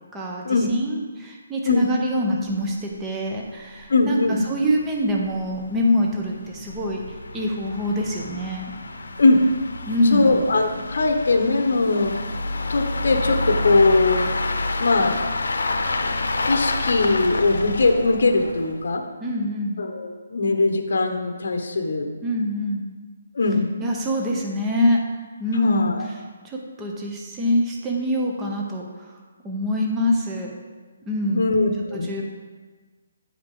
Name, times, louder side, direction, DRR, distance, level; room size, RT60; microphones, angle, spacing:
voice 1, 0.1-7.0 7.3-8.7 9.8-10.4 19.2-19.8 22.2-22.9 23.8-25.0 25.4-26.1 26.4-29.2 29.4-30.5 31.1-31.5 31.9-32.2, left 1 dB, 10° right, -1 dB, 0.6 m, -25 dB
sound 1, 2.5-2.6 2.8-2.9 3.4-3.5 3.8-3.9 4.5-18.9, left 2 dB, 90° left, 0.7 m, -29 dB
voice 2, 3.9-4.4 9.2-9.4 10.1-12.1 12.7-14.3 14.8-15.2 16.0-16.1 16.5-19.0 19.8-22.1 23.3-23.7 25.6-26.1 31.3-32.1, left 3 dB, 65° left, 5 dB, 0.9 m, -20 dB
9.7 x 4.9 x 3.7 m, 1.4 s
hypercardioid pair, 170°, 0 cm